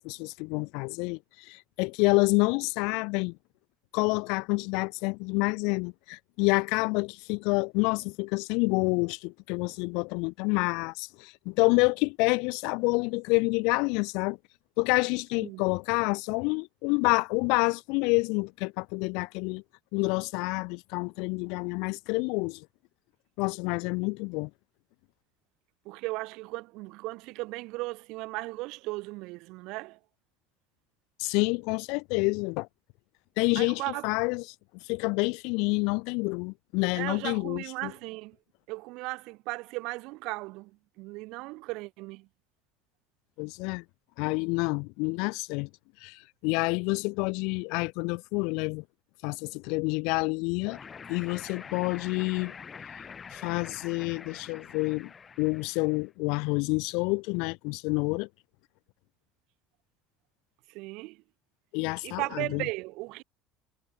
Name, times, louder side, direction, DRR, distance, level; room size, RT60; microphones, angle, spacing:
voice 1, 0.0-3.4 3.9-14.4 14.8-19.6 19.9-22.6 23.4-24.5 31.2-32.7 33.4-34.4 34.9-37.9 43.4-43.8 44.2-45.7 46.0-48.8 49.2-50.8 51.1-52.5 53.3-55.1 55.4-58.3 61.7-62.6, left 30 dB, 75° left, 3.0 m, -28 dB
voice 2, 25.8-30.0 33.5-34.1 37.0-38.4 38.7-42.3 60.7-61.2 62.0-63.2, right 23 dB, 70° right, 4.4 m, -36 dB
sound 1, 50.6-56.1, left 6 dB, 30° left, 6.6 m, -45 dB
supercardioid pair, 95°, 0 cm